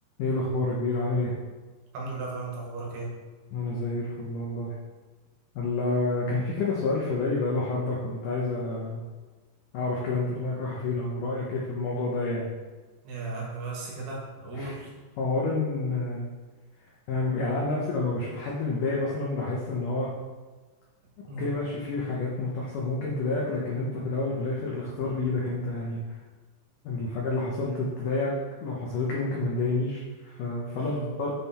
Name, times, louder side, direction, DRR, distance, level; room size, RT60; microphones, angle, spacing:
voice 1, 0.2-1.3 3.5-4.7 5.6-9.1 9.7-12.5 14.6-14.7 15.2-16.3 17.1-20.1 21.4-26.0 26.8-28.4 28.6-31.3, left 3 dB, 80° left, -4 dB, 1.9 m, -29 dB
voice 2, 1.9-3.2 13.0-14.9 21.3-21.5 30.7-31.1, right 3 dB, 70° right, -3 dB, 3.4 m, -36 dB
7.8 x 5.4 x 4.3 m, 1.3 s
omnidirectional pair, 5.1 m